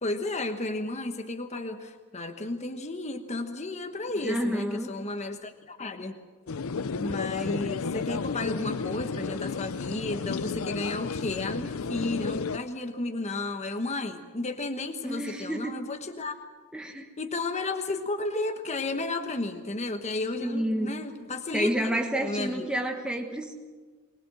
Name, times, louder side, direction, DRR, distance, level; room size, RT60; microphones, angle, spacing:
voice 1, 0.0-6.2 7.0-16.3 17.2-21.9 22.2-22.7, left 2 dB, 30° left, 6 dB, 1.2 m, -33 dB
voice 2, 4.2-4.9 15.0-15.8 16.7-17.1 20.4-20.9 21.5-23.5, right 1 dB, 5° right, 2 dB, 1.4 m, -29 dB
sound 1, 6.5-12.6, left 5 dB, 65° left, 0.6 m, -32 dB
23.0 x 20.0 x 7.7 m, 1.4 s
head